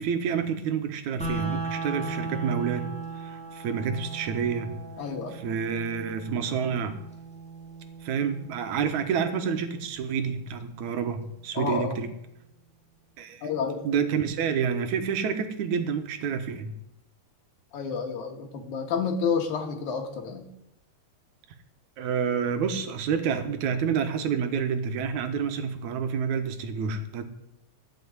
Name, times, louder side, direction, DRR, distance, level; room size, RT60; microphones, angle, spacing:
voice 1, 0.0-2.9 3.2-4.8 5.3-7.0 8.0-12.1 13.2-13.5 13.8-16.7 22.0-27.3, right 7 dB, 80° right, 7 dB, 2.6 m, -28 dB
sound 1, 1.2-11.2, right 4 dB, ahead, 2.3 m, -38 dB
voice 2, 5.0-5.4 11.5-11.9 13.4-13.8 17.7-20.5, left 6 dB, 80° left, 3 dB, 3.0 m, -30 dB
14.5 x 6.3 x 9.5 m, 0.86 s
omnidirectional pair, 3.3 m